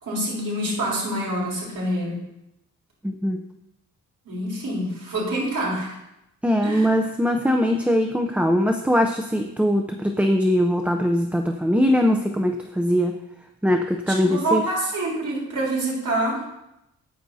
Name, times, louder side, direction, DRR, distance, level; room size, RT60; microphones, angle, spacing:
voice 1, 0.0-2.2 4.3-6.0 6.6-6.9 14.2-16.4, right 1 dB, 70° right, -4 dB, 3.9 m, -26 dB
voice 2, 3.0-3.4 6.4-13.1 13.6-14.6, equal, 5° right, 4 dB, 0.5 m, -21 dB
13.5 x 9.2 x 2.7 m, 0.86 s
wide cardioid pair, 140°, 32 cm